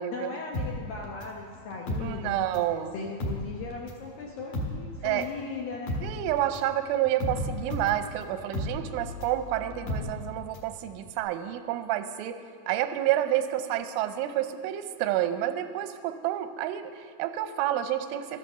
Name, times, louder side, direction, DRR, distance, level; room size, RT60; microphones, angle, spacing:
voice 1, 0.1-2.5 2.9-6.0, left 4 dB, 80° left, 0 dB, 2.1 m, -38 dB
sound 1, 0.5-2.8 3.1-10.8 11.1-11.2, left 1 dB, 60° left, 2.7 m, -34 dB
voice 2, 2.0-2.9 5.0-5.3 6.0-12.4 12.7-18.4, right 12 dB, 90° right, 10 dB, 3.2 m, -29 dB
12.5 x 11.0 x 6.8 m, 2.1 s
omnidirectional pair, 5.4 m